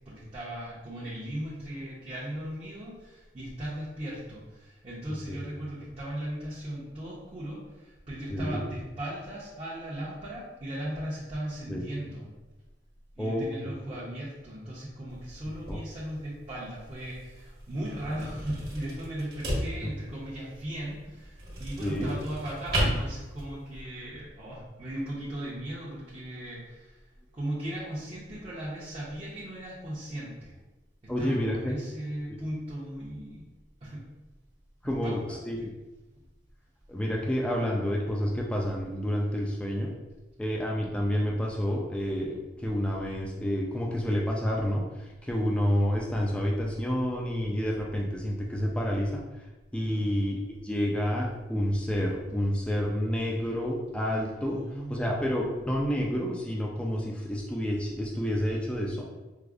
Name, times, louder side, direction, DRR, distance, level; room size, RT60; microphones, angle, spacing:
voice 1, 0.0-12.3 13.2-27.0 27.3-30.6 31.2-33.5 33.8-34.0 34.8-35.7 49.9-50.2 54.4-55.3, right 1 dB, 30° right, -8 dB, 0.6 m, -37 dB
sound 1, 15.1-23.8, equal, 55° right, 1.2 m, -35 dB
voice 2, 21.8-22.1 31.1-31.8 34.8-35.7 36.9-39.9 40.4-49.2 49.7-54.6 54.9-59.0, equal, 5° left, -2 dB, 0.3 m, -29 dB
4.7 x 2.0 x 2.4 m, 1.1 s
head